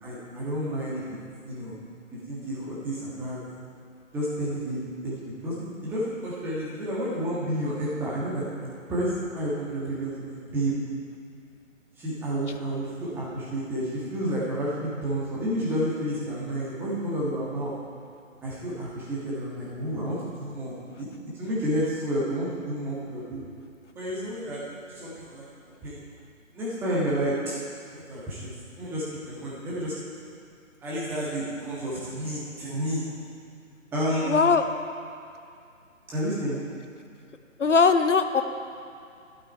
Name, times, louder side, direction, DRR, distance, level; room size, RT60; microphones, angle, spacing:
voice 1, 0.0-1.2 1.4-1.8 2.3-3.4 4.1-10.7 12.0-17.7 18.4-21.1 21.4-23.4 23.9-24.6 24.9-25.4 25.8-26.0 26.5-27.5 27.9-28.5 28.8-29.9 30.8-33.1 33.9-34.5 36.1-36.6, equal, 5° right, -8 dB, 1.5 m, -30 dB
voice 2, 34.2-34.6 37.6-38.4, left 5 dB, 60° left, 9 dB, 0.9 m, -20 dB
12.0 x 11.5 x 4.6 m, 2.4 s
figure-of-eight pair, 140°, 40 cm